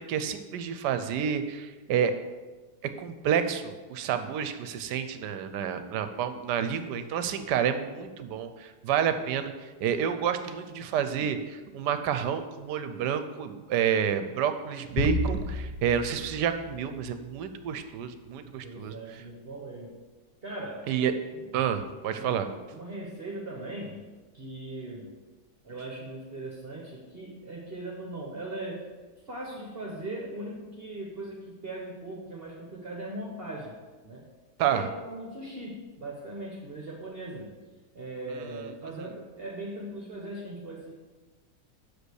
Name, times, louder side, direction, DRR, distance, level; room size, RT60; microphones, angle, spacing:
voice 1, 0.0-2.1 3.0-9.5 9.8-18.9 20.9-21.1 21.5-22.5 34.6-34.9 38.3-38.7, right 8 dB, 80° right, 9 dB, 1.2 m, -29 dB
sound 1, 15.0-17.5, left 3 dB, 65° left, 0.7 m, -33 dB
voice 2, 18.4-20.0 20.4-21.5 22.1-22.5 22.7-25.1 25.6-28.9 29.2-34.3 34.7-37.5 37.9-40.9, right 1 dB, 40° right, -2 dB, 1.1 m, -39 dB
6.7 x 5.1 x 6.4 m, 1.3 s
omnidirectional pair, 1.9 m